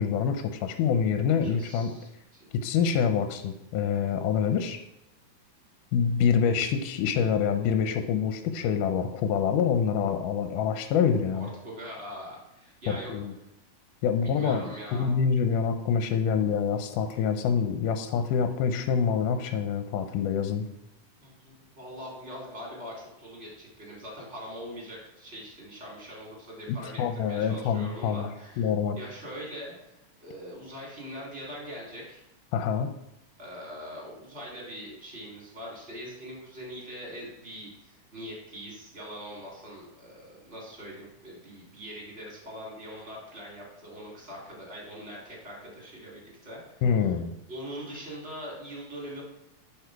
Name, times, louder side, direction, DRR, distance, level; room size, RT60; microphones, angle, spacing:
voice 1, 0.0-1.9 2.6-4.8 5.9-11.5 12.9-13.3 14.0-20.7 26.7-28.3 28.6-29.0 32.5-32.9 46.8-47.3, left 7 dB, 85° left, 8 dB, 2.2 m, -26 dB
voice 2, 1.4-2.5 11.3-13.1 14.2-15.1 21.2-28.7 29.0-32.2 33.4-46.8 47.5-49.2, equal, 25° right, -3 dB, 2.5 m, -42 dB
10.5 x 4.6 x 4.6 m, 0.84 s
omnidirectional pair, 3.7 m